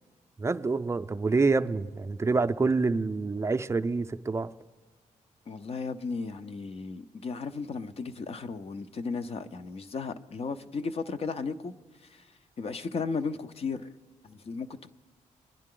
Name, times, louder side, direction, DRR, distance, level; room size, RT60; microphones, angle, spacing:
voice 1, 0.4-4.5, right 3 dB, 20° right, 0.4 m, -27 dB
voice 2, 5.5-11.7 12.0-12.3 12.6-13.9 14.2-14.9, left 4 dB, 50° left, 0.6 m, -35 dB
23.5 x 10.5 x 3.8 m
cardioid pair, 95°, 13 cm